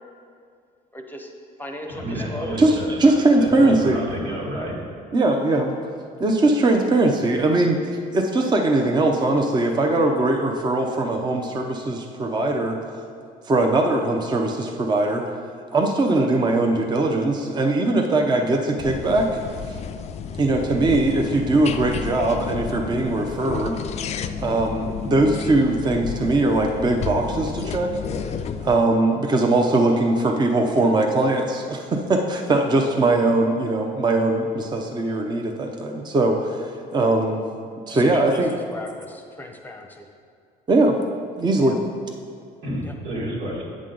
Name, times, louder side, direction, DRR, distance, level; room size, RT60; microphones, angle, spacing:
voice 1, 0.9-1.3 1.6-2.7 37.9-40.1 41.6-41.8 42.8-42.9, left 1 dB, 10° left, 3 dB, 0.8 m, -37 dB
voice 2, 1.9-2.9 3.4-4.8 18.1-18.2 42.6-43.6, equal, 90° right, -4 dB, 2.0 m, -30 dB
voice 3, 3.0-4.0 5.1-5.7 6.2-7.8 8.1-12.8 13.5-15.2 15.7-19.3 20.4-23.8 24.4-27.9 28.6-37.5 37.9-38.5 40.7-41.0 41.4-41.8, right 2 dB, 25° right, 2 dB, 0.7 m, -20 dB
sound 1, 18.8-28.7, left 7 dB, 40° left, 0.4 m, -31 dB
8.4 x 6.2 x 3.8 m, 2.3 s
cardioid pair, 110°, 17 cm